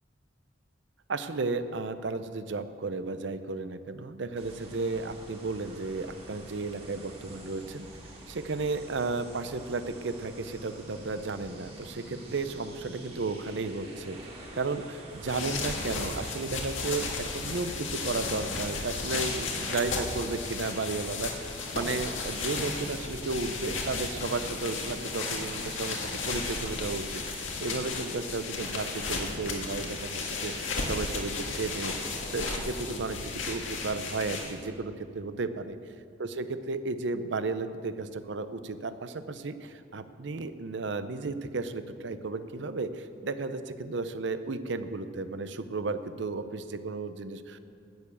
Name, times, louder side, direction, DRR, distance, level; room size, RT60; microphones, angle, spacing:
voice 1, 1.1-7.9 8.3-14.2 14.5-35.8 36.2-47.6, right 3 dB, 70° right, 11 dB, 0.6 m, -34 dB
sound 1, 4.4-24.4, right 1 dB, 30° right, 1.7 m, -48 dB
sound 2, 15.1-34.7, left 3 dB, 90° left, 1.8 m, -34 dB
12.0 x 7.0 x 8.5 m, 2.5 s
head